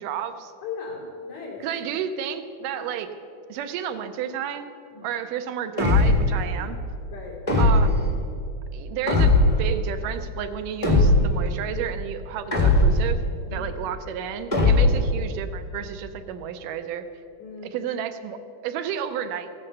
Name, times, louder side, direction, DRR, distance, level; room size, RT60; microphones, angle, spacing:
voice 1, 0.0-0.5 1.6-3.1 3.5-4.7 5.0-6.8 7.6-8.0 8.7-13.2 13.5-17.1 17.7-19.5, right 8 dB, 85° right, 8 dB, 2.4 m, -31 dB
voice 2, 0.6-1.6 4.9-5.1 7.1-7.4 13.5-13.7 17.4-17.8, left 5 dB, 65° left, -4 dB, 4.4 m, -37 dB
sound 1, 5.8-6.4 7.5-8.1 9.1-9.7 10.8-11.5 12.5-13.2 14.5-15.1, left 2 dB, 45° left, 0.4 m, -18 dB
15.5 x 8.7 x 6.6 m, 2.4 s
omnidirectional pair, 3.7 m